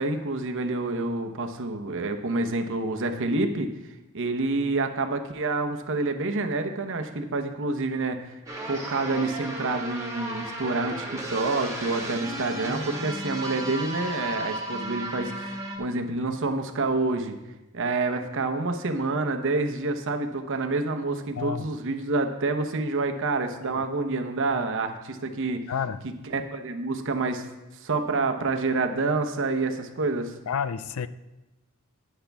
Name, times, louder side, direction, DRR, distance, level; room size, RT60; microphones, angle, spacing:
voice 1, 0.0-3.7 4.1-8.3 8.6-17.4 17.7-25.6 26.3-27.5 27.8-30.3, right 3 dB, 60° right, 1.0 m, -28 dB
sound 1, 8.5-15.8, right 1 dB, 15° right, 1.8 m, -34 dB
voice 2, 21.3-21.7 23.6-23.8 25.7-26.1 30.5-31.1, left 7 dB, 70° left, 0.4 m, -30 dB
10.0 x 9.4 x 3.5 m
head